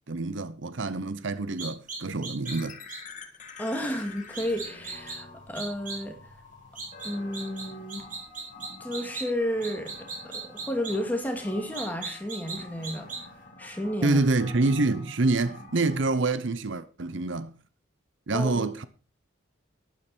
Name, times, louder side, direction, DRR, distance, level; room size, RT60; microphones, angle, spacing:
voice 1, 0.1-2.8 14.0-17.5 18.3-18.9, right 3 dB, 65° right, 0.8 m, -26 dB
sound 1, 1.6-2.5 2.9-3.0 4.3-5.2 5.5-6.0 6.7-7.6 7.9-9.2 9.6-10.9 11.7-12.6 12.8-13.2, right 4 dB, 40° right, 5.1 m, -37 dB
sound 2, 2.4-16.1, left 3 dB, 40° left, 2.0 m, -47 dB
voice 2, 3.6-6.2 7.0-8.1 8.8-13.1 13.6-14.2 18.3-18.7, equal, 10° left, 2.4 m, -32 dB
12.0 x 10.5 x 4.5 m
head